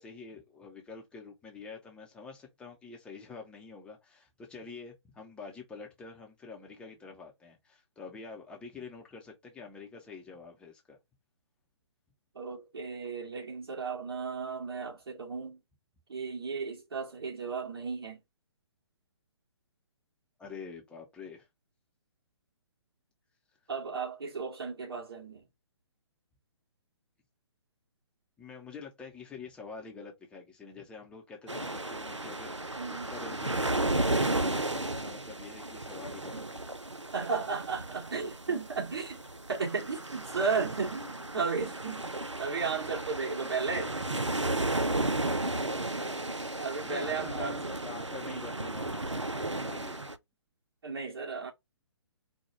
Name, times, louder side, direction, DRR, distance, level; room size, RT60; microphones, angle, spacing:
voice 1, 0.0-11.0 20.4-21.5 28.4-32.8 33.1-36.6 46.8-50.1, left 4 dB, 5° left, 0.7 m, -47 dB
voice 2, 12.3-15.6 16.1-18.2 23.7-25.4 32.8-33.1 36.3-36.5 36.9-39.2 39.5-42.1 42.4-43.9 46.3-47.6 48.3-48.4 50.8-51.5, right 5 dB, 55° right, 2.4 m, -34 dB
sound 1, 31.5-50.1, right 2 dB, 90° right, 0.6 m, -34 dB
4.4 x 2.3 x 4.3 m
figure-of-eight pair, 130°, 15 cm